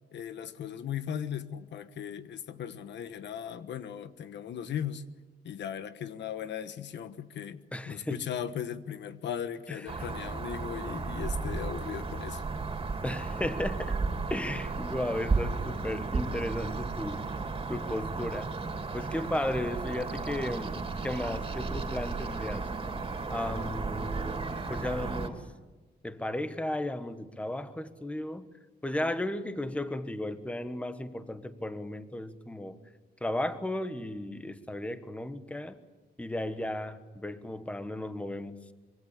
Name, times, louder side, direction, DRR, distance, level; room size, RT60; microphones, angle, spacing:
voice 1, 0.1-5.0 5.4-12.4, left 9 dB, 80° left, 1.2 m, -37 dB
voice 2, 7.7-8.2 9.7-10.1 13.0-14.0 14.3-17.3 17.7-18.5 18.9-22.7 23.3-25.4 26.0-28.5 28.8-32.8 33.2-35.8 36.2-38.7, left 1 dB, 5° left, 1.4 m, -35 dB
sound 1, 9.9-25.3, right 4 dB, 30° right, 3.2 m, -34 dB
25.5 x 23.5 x 8.5 m
wide cardioid pair, 145°, 18 cm